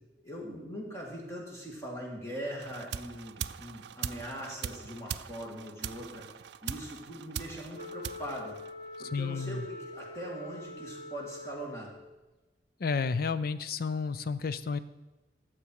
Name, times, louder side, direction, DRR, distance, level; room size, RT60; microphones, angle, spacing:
voice 1, 0.2-6.2 6.6-8.6 9.0-11.9, equal, 15° left, -2 dB, 2.4 m, -41 dB
sound 1, 2.6-9.2, right 8 dB, 70° right, 0.4 m, -41 dB
Wind instrument woodwind instrument, 7.7-12.1, left 1 dB, 75° left, 1.4 m, -45 dB
voice 2, 9.1-9.6 12.8-14.8, left 5 dB, 55° left, 14 dB, 0.5 m, -31 dB
13.5 x 7.3 x 4.7 m, 1.1 s
head